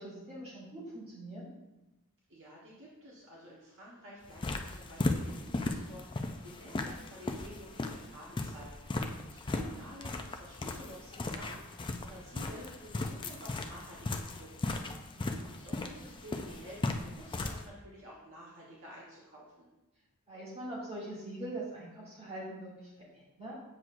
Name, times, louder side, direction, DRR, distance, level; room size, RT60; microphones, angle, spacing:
voice 1, 0.0-1.5 9.5-9.8 15.1-15.3 20.3-23.5, right 1 dB, 30° right, -7 dB, 2.3 m, -43 dB
voice 2, 2.3-14.7 15.3-19.7, equal, 60° right, -5 dB, 1.3 m, -51 dB
sound 1, 4.2-17.6, left 2 dB, 20° left, 0.4 m, -37 dB
7.5 x 6.1 x 2.6 m, 1.0 s
head